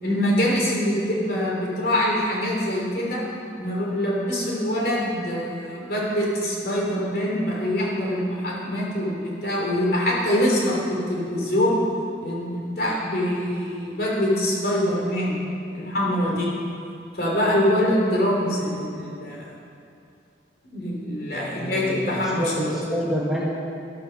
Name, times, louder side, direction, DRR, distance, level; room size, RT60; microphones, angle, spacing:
voice 1, 0.0-3.2 3.6-11.8 12.2-15.3 15.7-16.5 17.2-19.5 20.7-22.7, left 1 dB, 55° left, -3 dB, 3.2 m, -24 dB
voice 2, 21.3-23.4, equal, 5° right, -5 dB, 1.4 m, -28 dB
12.0 x 12.0 x 5.9 m, 2.5 s
head